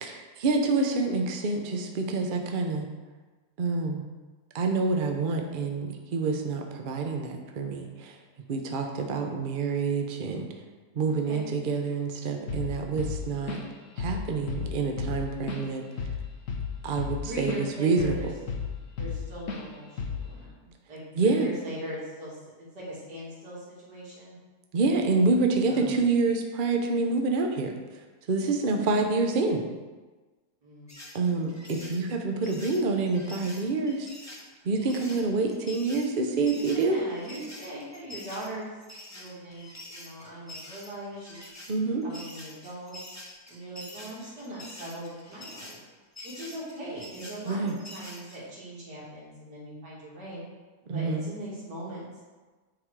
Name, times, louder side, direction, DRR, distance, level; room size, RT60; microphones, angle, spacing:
voice 1, 0.0-2.9 3.6-4.0 4.5-8.2 8.5-10.5 11.0-13.6 14.0-15.8 16.8-18.3 21.2-21.5 24.7-27.7 28.3-29.6 31.1-34.1 34.6-37.0 41.7-42.0 47.5-47.7 50.9-51.2, right 3 dB, 50° right, 3 dB, 0.6 m, -27 dB
voice 2, 11.0-11.5 17.2-18.3 19.0-24.4 25.6-26.1 28.5-28.9 30.6-31.0 36.5-38.8 39.1-41.4 42.0-43.0 43.5-45.8 46.2-50.4 50.8-52.2, right 1 dB, 70° right, -7 dB, 3.0 m, -40 dB
Drum kit / Drum, 12.5-12.7 13.0-13.7 14.0-14.2 14.5-17.6 18.0-19.2 19.5-19.7 20.0-20.3, left 5 dB, 55° left, 1.2 m, -33 dB
sound 1, 30.9-48.4, left 1 dB, 15° left, 0.8 m, -46 dB
9.3 x 4.0 x 4.7 m, 1.3 s
omnidirectional pair, 1.8 m